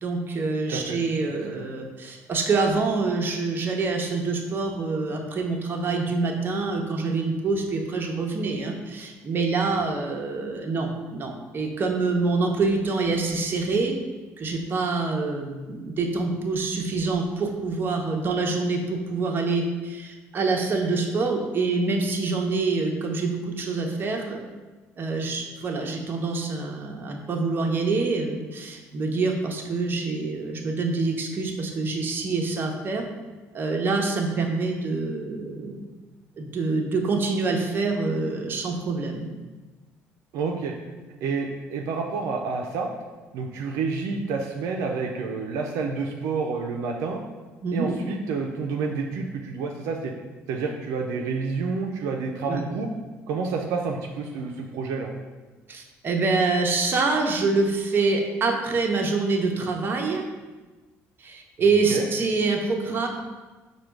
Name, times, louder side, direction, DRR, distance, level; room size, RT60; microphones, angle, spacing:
voice 1, 0.0-14.0 14.4-24.4 25.0-33.0 33.5-35.8 36.4-39.3 47.6-47.9 52.5-52.6 55.7-60.2 61.2-63.1, right 3 dB, 40° right, 2 dB, 0.8 m, -26 dB
voice 2, 40.3-40.7 41.2-42.9 43.3-47.2 47.7-50.1 50.5-52.9 53.3-55.1 61.9-62.1, right 4 dB, 75° right, 1 dB, 0.5 m, -29 dB
4.9 x 2.3 x 4.5 m, 1.3 s
supercardioid pair, 85°, 6 cm